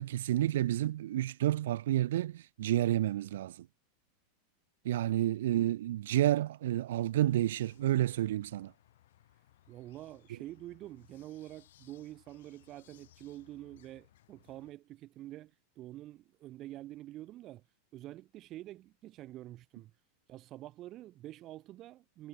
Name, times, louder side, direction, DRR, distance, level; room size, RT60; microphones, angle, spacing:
voice 1, 0.0-3.6 4.8-8.7, right 13 dB, 80° right, 0.9 m, -30 dB
voice 2, 4.9-5.2 9.7-17.6 17.9-19.9 20.3-22.3, right 15 dB, 30° right, 1.9 m, -47 dB
sound 1, 7.2-14.7, left 13 dB, 80° left, 6.1 m, -64 dB
supercardioid pair, 170°, 0 cm